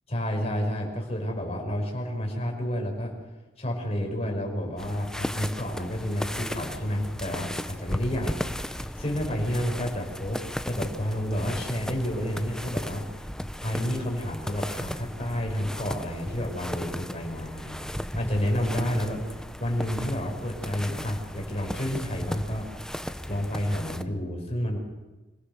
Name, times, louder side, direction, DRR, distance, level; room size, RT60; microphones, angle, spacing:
voice 1, 0.1-3.1 3.6-8.4 8.7-10.4 10.6-13.1 13.6-17.8 18.1-19.2 19.6-22.7 23.3-24.8, equal, 35° left, 0 dB, 5.3 m, -30 dB
sound 1, 4.8-24.0, equal, 5° left, 0.7 m, -36 dB
26.0 x 17.5 x 6.8 m, 1.1 s
head